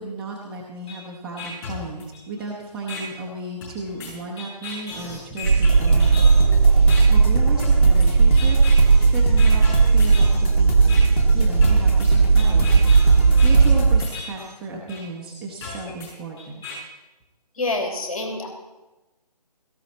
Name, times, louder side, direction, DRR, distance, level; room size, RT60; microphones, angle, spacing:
voice 1, 0.0-11.0 11.3-16.6, right 3 dB, 5° right, -6 dB, 0.4 m, -34 dB
sound 1, 0.9-1.0 1.4-2.4 2.9-3.0 3.6-6.4 6.9-7.0 7.6-8.1 8.4-8.9 9.4-10.4 10.9-11.0 11.6-14.4 14.9-15.0 15.6-16.7, left 5 dB, 40° left, 6.0 m, -36 dB
sound 2, 5.4-14.0, right 4 dB, 60° right, 0.6 m, -16 dB
sound 3, 5.7-14.1, left 3 dB, 20° left, 1.0 m, -32 dB
voice 2, 17.6-18.5, left 2 dB, 55° left, 2 dB, 3.5 m, -26 dB
17.0 x 14.0 x 4.1 m, 1.1 s
figure-of-eight pair, 150°, 21 cm